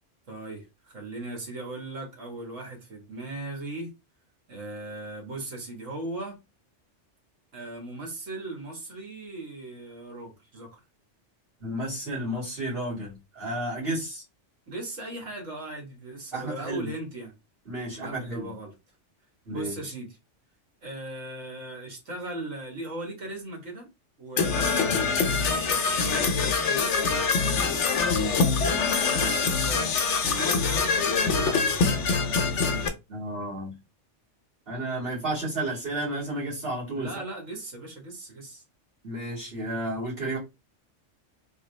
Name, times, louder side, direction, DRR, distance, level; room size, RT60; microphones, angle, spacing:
voice 1, 0.3-3.9 4.5-6.4 7.5-10.8 14.7-17.3 18.0-18.7 19.5-20.2 20.8-23.9 24.2-29.9 30.2-32.9 36.9-38.6, right 2 dB, 85° right, 1.9 m, -38 dB
voice 2, 11.6-14.2 16.3-16.9 17.7-18.5 19.4-19.9 33.1-33.7 34.7-37.1 39.0-40.4, right 1 dB, 50° right, 2.5 m, -32 dB
Percussion / Brass instrument, 24.4-32.9, left 4 dB, 70° left, 1.1 m, -24 dB
3.7 x 3.2 x 3.3 m
omnidirectional pair, 1.3 m